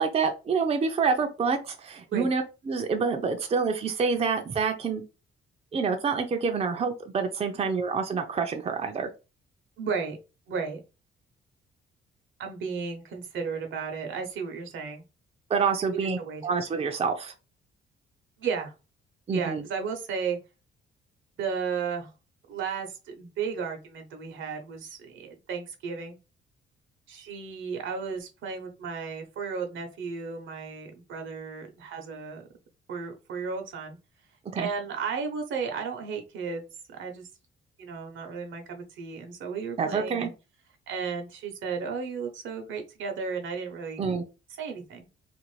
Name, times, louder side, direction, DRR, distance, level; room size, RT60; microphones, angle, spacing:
voice 1, 0.0-5.0 5.7-9.1 15.5-17.3 19.3-19.6 34.5-34.7 39.8-40.3 44.0-44.2, right 5 dB, 30° right, 0.5 m, -27 dB
voice 2, 9.8-10.2 10.5-10.8 12.4-15.0 16.0-16.4 18.4-18.7 19.3-20.4 21.4-22.1 22.5-26.2 27.1-32.4 32.9-34.0 34.6-36.6 36.9-37.3 37.8-40.3 40.9-44.0 44.6-45.1, right 5 dB, 75° right, 0.8 m, -34 dB
2.6 x 2.5 x 3.1 m
cardioid pair, 90°, 20 cm